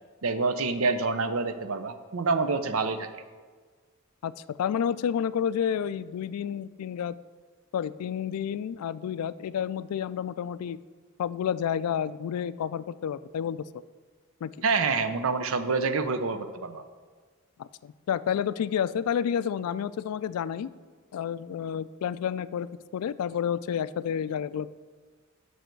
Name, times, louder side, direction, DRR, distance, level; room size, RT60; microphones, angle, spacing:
voice 1, 0.2-3.1 14.6-16.8, right 4 dB, 70° right, 10 dB, 0.6 m, -27 dB
voice 2, 4.2-7.1 7.7-10.8 11.2-13.7 14.4-14.5 17.6-20.7 21.1-24.7, left 8 dB, 90° left, 17 dB, 0.3 m, -30 dB
9.2 x 6.4 x 4.5 m, 1.5 s
head